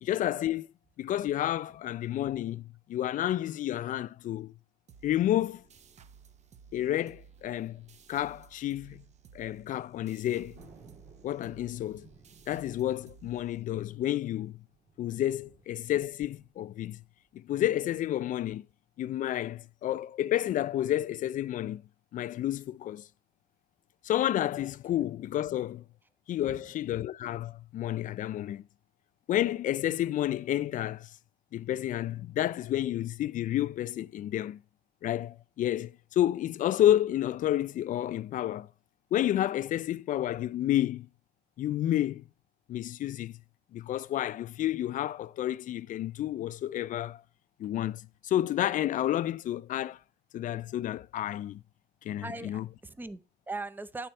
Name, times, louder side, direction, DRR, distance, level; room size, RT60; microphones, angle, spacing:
voice 1, 0.0-4.5 5.0-5.6 6.7-9.0 9.3-10.5 11.2-12.1 12.5-14.6 15.0-17.0 17.3-18.7 19.0-21.8 22.1-23.1 24.0-25.8 26.3-28.7 29.3-31.1 31.5-34.6 35.0-38.7 39.1-41.1 41.6-42.2 42.7-43.4 43.7-47.2 47.6-50.0 50.3-51.6 52.0-52.7, left 12 dB, 50° left, 0.4 m, -30 dB
sound 1, 4.9-14.1, right 7 dB, 40° right, 0.8 m, -56 dB
Thunder, 10.5-17.4, right 4 dB, 65° right, 3.1 m, -59 dB
voice 2, 26.4-26.7 52.2-54.1, right 3 dB, 10° right, 0.6 m, -40 dB
9.0 x 4.4 x 5.4 m
cardioid pair, 110°, 17 cm